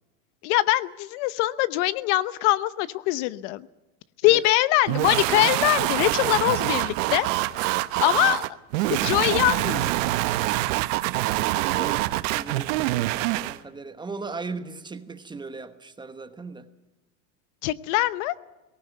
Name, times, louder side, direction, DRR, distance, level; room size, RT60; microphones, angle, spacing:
voice 1, 0.4-3.7 4.2-7.3 8.0-8.5 8.9-9.9 17.6-18.3, left 16 dB, 55° left, 16 dB, 0.9 m, -23 dB
sound 1, 4.9-13.6, right 17 dB, 65° right, 1.1 m, -25 dB
voice 2, 11.7-12.7 13.4-16.7, right 4 dB, 10° right, 10 dB, 1.0 m, -37 dB
18.5 x 18.0 x 9.3 m, 1.1 s
supercardioid pair, 145°, 41 cm